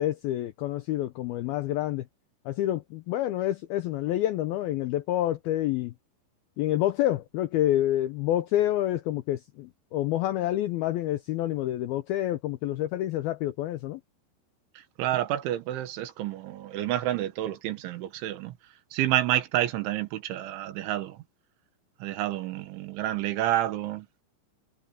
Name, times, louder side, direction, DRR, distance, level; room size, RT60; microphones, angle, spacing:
voice 1, 0.0-2.1 2.5-5.9 6.6-14.0, left 13 dB, 85° left, 2.1 m, -28 dB
voice 2, 15.0-18.5 18.9-21.2 22.0-24.1, right 13 dB, 85° right, 3.9 m, -29 dB
omnidirectional pair, 5.3 m